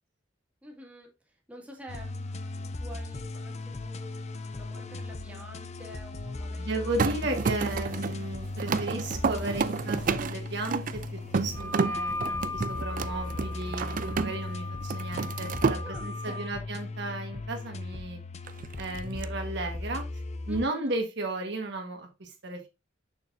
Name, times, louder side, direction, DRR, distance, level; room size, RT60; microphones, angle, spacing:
voice 1, 0.6-1.1 1.5-7.0 15.8-16.6 20.5-20.9, equal, 5° right, 2.0 m, -47 dB
sound 1, 1.9-20.7, left 2 dB, 35° left, 0.5 m, -37 dB
voice 2, 6.6-10.8 11.1-18.2 18.8-20.0 20.5-22.7, right 2 dB, 65° right, 1.5 m, -34 dB
sound 2, 7.0-14.5 14.8-15.8 18.5-19.2, right 5 dB, 45° right, 0.4 m, -31 dB
Wind instrument woodwind instrument, 11.5-16.5, left 2 dB, 85° right, 1.0 m, -38 dB
6.6 x 6.4 x 2.6 m
head